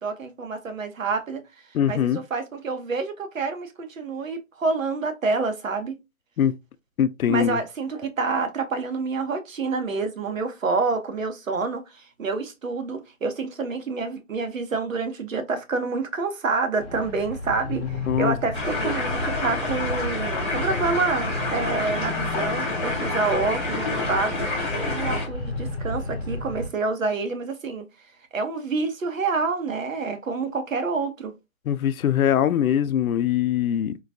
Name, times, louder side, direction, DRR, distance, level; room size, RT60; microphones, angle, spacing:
voice 1, 0.0-1.4 1.9-6.0 7.3-24.3 24.7-27.9 28.3-31.3, right 4 dB, 70° right, 0.9 m, -28 dB
voice 2, 1.7-2.2 6.4-6.5 7.0-7.6 17.7-18.3 31.7-34.0, left 9 dB, 85° left, 0.5 m, -22 dB
sound 1, 16.8-26.7, left 1 dB, 45° left, 0.8 m, -33 dB
sound 2, 18.5-25.3, left 2 dB, 20° left, 1.2 m, -28 dB
3.8 x 2.2 x 2.6 m
hypercardioid pair, 180°, 41 cm